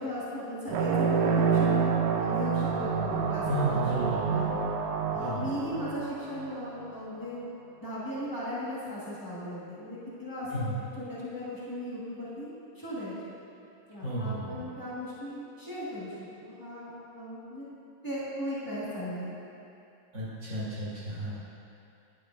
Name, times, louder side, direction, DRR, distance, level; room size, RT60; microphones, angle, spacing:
voice 1, 0.0-3.8 4.1-4.6 5.1-7.4 7.8-13.4 13.9-16.2 16.4-17.6 18.0-19.3, left 1 dB, 15° left, -10 dB, 0.8 m, -37 dB
sound 1, 0.7-6.8, right 6 dB, 85° right, 1.4 m, -28 dB
voice 2, 3.5-4.2 5.1-5.5 10.5-10.8 14.0-14.6 20.1-21.3, right 1 dB, 40° right, -10 dB, 2.5 m, -32 dB
9.6 x 9.3 x 2.6 m, 2.7 s
omnidirectional pair, 3.4 m